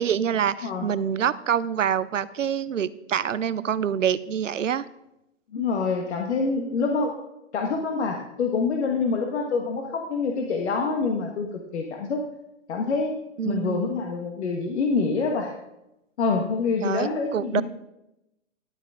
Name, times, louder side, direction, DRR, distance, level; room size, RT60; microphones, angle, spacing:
voice 1, 0.0-4.9 13.4-13.9 16.8-17.6, right 8 dB, 90° right, 17 dB, 0.7 m, -26 dB
voice 2, 5.5-7.1 7.5-12.2 12.7-13.1 13.4-15.5 16.2-17.6, left 4 dB, 65° left, 2 dB, 1.5 m, -26 dB
12.5 x 9.0 x 3.7 m, 0.89 s
hypercardioid pair, 130°, 37 cm